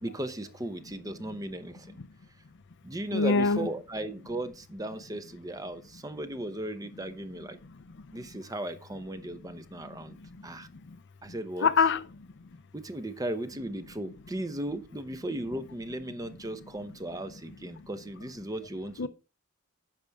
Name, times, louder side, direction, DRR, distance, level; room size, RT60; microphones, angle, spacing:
voice 1, 0.0-2.0 2.8-7.6 8.1-10.7 11.2-11.7 12.7-19.1, right 1 dB, 15° right, 0.8 m, -36 dB
voice 2, 3.1-3.7 11.6-12.0 19.0-19.1, left 4 dB, 55° left, 0.6 m, -23 dB
10.0 x 6.7 x 3.5 m
head